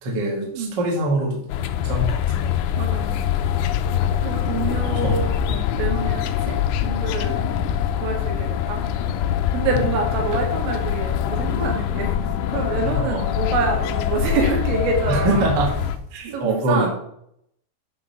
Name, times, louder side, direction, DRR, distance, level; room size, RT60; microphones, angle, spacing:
voice 1, 0.0-1.4 1.8-2.6 5.0-5.2 9.7-9.8 10.3-10.4 12.8-13.3 15.1-15.7 16.1-16.9, right 2 dB, 45° right, -2 dB, 1.4 m, -24 dB
sound 1, 1.5-16.0, left 9 dB, 85° left, 2.4 m, -24 dB
voice 2, 2.8-3.2 3.9-7.4 8.0-8.8 9.5-15.4 16.2-16.9, right 4 dB, 70° right, 1 dB, 4.0 m, -27 dB
10.5 x 4.4 x 5.6 m, 0.72 s
omnidirectional pair, 5.6 m